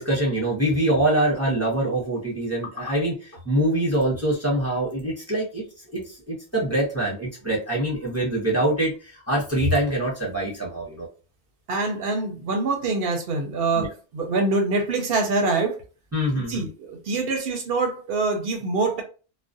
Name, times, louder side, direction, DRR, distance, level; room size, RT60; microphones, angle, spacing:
voice 1, 0.0-5.6 5.9-11.1 13.8-13.9 16.1-16.7, right 1 dB, 15° right, -5 dB, 0.6 m, -24 dB
voice 2, 11.7-15.8 16.3-19.0, right 3 dB, 60° right, 4 dB, 0.7 m, -25 dB
2.4 x 2.0 x 2.5 m, 0.35 s
omnidirectional pair, 1.2 m